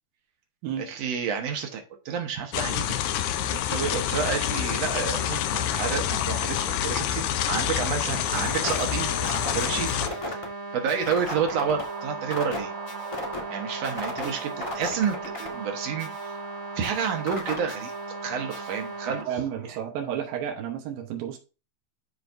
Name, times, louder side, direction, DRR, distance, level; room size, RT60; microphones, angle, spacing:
voice 1, 0.8-3.0 3.4-10.4 10.7-12.7 13.5-16.3 16.8-17.9 18.2-19.3 19.7-19.8, right 7 dB, 60° right, 2.0 m, -30 dB
sound 1, 2.5-10.1, left 11 dB, 80° left, 1.7 m, -27 dB
sound 2, 8.3-19.2, right 1 dB, 45° left, 0.4 m, -35 dB
sound 3, 11.2-19.9, right 5 dB, 40° right, 1.7 m, -42 dB
voice 2, 19.3-21.4, right 9 dB, 85° right, 2.9 m, -32 dB
12.0 x 5.0 x 2.6 m
omnidirectional pair, 4.0 m